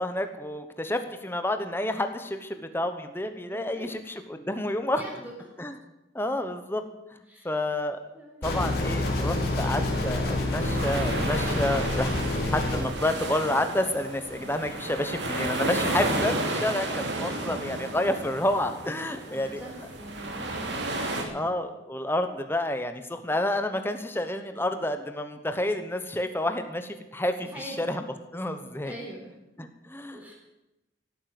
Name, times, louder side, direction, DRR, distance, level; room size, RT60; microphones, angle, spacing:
voice 1, 0.0-5.0 5.6-5.8 6.1-6.8 7.1-8.0 8.4-12.1 12.5-19.6 21.3-28.0 28.3-28.9 29.6-30.2, left 1 dB, 10° left, 8 dB, 1.0 m, -29 dB
voice 2, 3.4-4.0 4.9-5.3 7.3-7.6 8.1-8.5 17.1-18.0 19.2-21.5 27.4-28.0 28.8-29.3 30.1-30.3, right 1 dB, 10° right, -1 dB, 4.0 m, -44 dB
sound 1, 8.4-12.8, left 2 dB, 50° left, 3.6 m, -27 dB
sound 2, 10.6-21.2, right 2 dB, 60° right, 2.6 m, -32 dB
16.5 x 9.3 x 7.8 m, 0.98 s
head